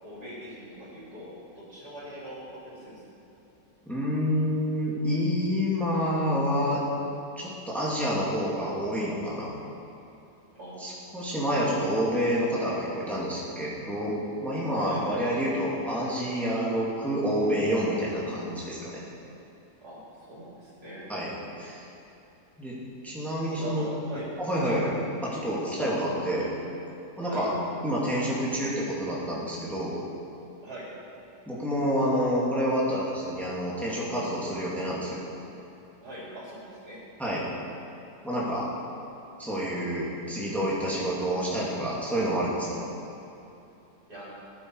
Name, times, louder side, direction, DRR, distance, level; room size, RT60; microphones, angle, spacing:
voice 1, 0.0-3.0 10.5-10.9 14.8-15.1 19.8-21.1 23.6-24.3 24.5-24.8 27.2-27.5 30.6-30.9 36.0-37.0 44.1-44.4, right 1 dB, 70° right, -7 dB, 4.3 m, -42 dB
voice 2, 3.9-6.8 7.4-9.5 10.8-14.2 14.4-19.0 21.1-21.3 21.6-21.9 22.6-22.8 23.0-23.9 24.4-24.9 25.2-26.5 27.2-27.5 27.8-30.0 31.5-35.3 37.2-37.4 38.2-38.7 39.4-42.9, equal, ahead, -6 dB, 2.4 m, -28 dB
17.0 x 9.9 x 4.8 m, 2.9 s
omnidirectional pair, 1.8 m